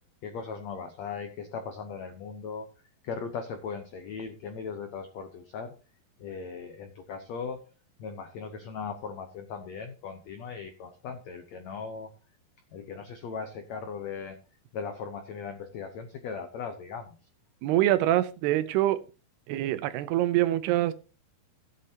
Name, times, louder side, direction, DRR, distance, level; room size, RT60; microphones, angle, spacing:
voice 1, 0.2-2.7 3.0-5.7 6.2-7.6 8.0-12.1 12.7-14.4 14.7-17.2, left 5 dB, 85° left, 1.5 m, -38 dB
voice 2, 17.6-19.0 19.5-20.9, right 14 dB, 90° right, 2.8 m, -25 dB
16.5 x 8.2 x 2.8 m
omnidirectional pair, 4.5 m